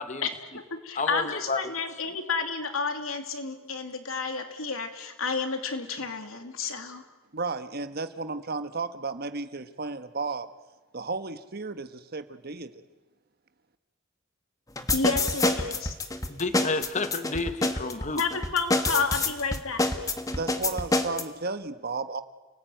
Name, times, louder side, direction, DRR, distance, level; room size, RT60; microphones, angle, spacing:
voice 1, 0.2-7.0 14.9-15.9 18.2-20.1, left 4 dB, 85° left, 6 dB, 2.8 m, -31 dB
voice 2, 0.9-1.6 16.3-18.2, left 3 dB, 35° left, 10 dB, 1.3 m, -30 dB
voice 3, 7.3-10.5 10.9-12.8 20.3-22.2, right 3 dB, 50° right, 10 dB, 1.3 m, -33 dB
sound 1, 14.8-21.2, left 2 dB, 15° left, 1.6 m, -26 dB
30.0 x 19.0 x 9.3 m, 1.2 s
head